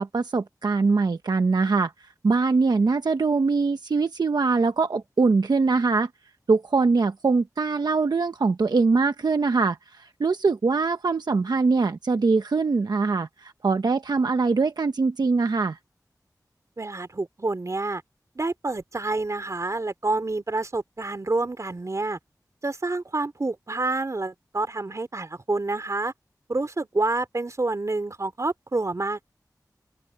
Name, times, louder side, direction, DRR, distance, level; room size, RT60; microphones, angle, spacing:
voice 1, 0.0-1.9 2.2-6.1 6.5-15.8, right 4 dB, 80° right, 1.0 m, -22 dB
voice 2, 16.8-18.0 18.3-22.2 22.6-26.1 26.5-29.3, right 2 dB, 50° right, 2.9 m, -28 dB
wide cardioid pair, 55°, 7 cm